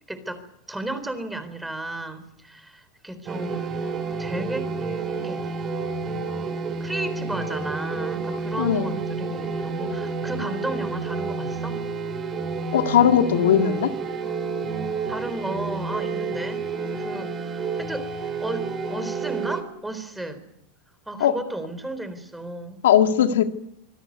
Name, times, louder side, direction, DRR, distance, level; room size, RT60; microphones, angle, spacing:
voice 1, 0.1-3.6 4.2-4.7 5.2-5.4 6.8-11.8 15.1-16.7 16.9-18.1 18.4-20.4 21.1-22.8, right 1 dB, 5° right, 11 dB, 3.9 m, -34 dB
sound 1, 3.3-19.6, right 4 dB, 30° right, 4.5 m, -30 dB
voice 2, 8.6-8.9 12.7-13.9 21.2-21.4 22.8-23.4, left 9 dB, 90° left, 6 dB, 1.9 m, -18 dB
25.5 x 17.5 x 9.4 m, 0.77 s
supercardioid pair, 125°, 0 cm